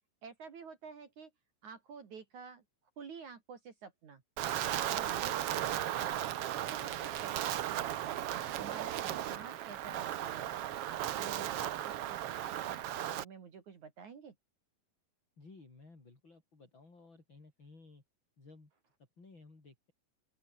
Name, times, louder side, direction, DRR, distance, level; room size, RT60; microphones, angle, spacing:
voice 1, 0.2-1.3 1.6-2.6 3.0-4.2 4.9-6.3 6.7-8.3 8.6-10.5 10.8-12.2 12.5-14.4, right 5 dB, 55° right, 3.9 m, -50 dB
Wind, 4.4-13.2, right 12 dB, 80° right, 1.3 m, -36 dB
voice 2, 15.4-18.0 18.4-18.7 19.2-19.9, left 3 dB, 30° left, 6.0 m, -56 dB
open air
omnidirectional pair, 4.2 m